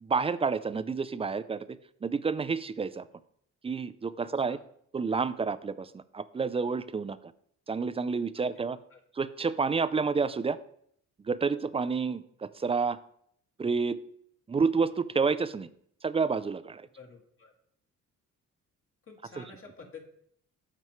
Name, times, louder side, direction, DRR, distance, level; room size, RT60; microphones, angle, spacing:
voice 1, 0.0-3.1 3.6-4.6 4.9-7.2 7.7-8.8 9.2-10.6 11.2-13.0 13.6-14.0 14.5-15.7 16.0-16.8, right 5 dB, 20° right, 15 dB, 0.4 m, -29 dB
voice 2, 4.2-4.7 8.4-8.6 8.9-9.0 17.0-17.5 19.0-20.0, left 4 dB, 45° left, 0 dB, 2.0 m, -50 dB
13.5 x 4.5 x 3.0 m, 0.68 s
cardioid pair, 90°, 30 cm